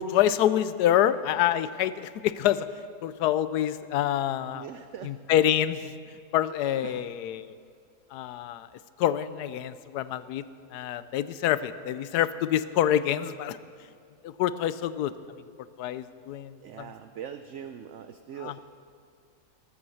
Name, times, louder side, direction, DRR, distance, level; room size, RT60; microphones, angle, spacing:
voice 1, 0.0-2.7 3.0-4.6 5.0-6.0 6.3-7.5 8.1-8.7 9.0-10.4 10.7-13.6 14.2-15.1 15.8-16.9 18.4-18.6, left 11 dB, 85° left, 14 dB, 1.2 m, -26 dB
voice 2, 4.5-5.2 6.8-7.1 16.6-18.6, right 8 dB, 65° right, 10 dB, 0.7 m, -41 dB
20.0 x 8.6 x 7.1 m, 2.2 s
omnidirectional pair, 1.7 m